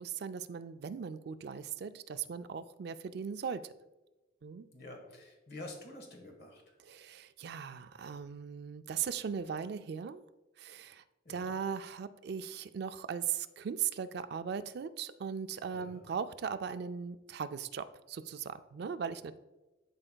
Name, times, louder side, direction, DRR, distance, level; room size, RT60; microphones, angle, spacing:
voice 1, 0.0-3.6 4.4-4.6 6.9-10.2 10.6-11.0 11.3-19.4, right 7 dB, 55° right, 11 dB, 0.3 m, -38 dB
voice 2, 4.7-6.6 11.2-11.6 15.7-16.0, left 2 dB, 55° left, 2 dB, 1.3 m, -48 dB
11.0 x 4.4 x 2.2 m, 1.1 s
head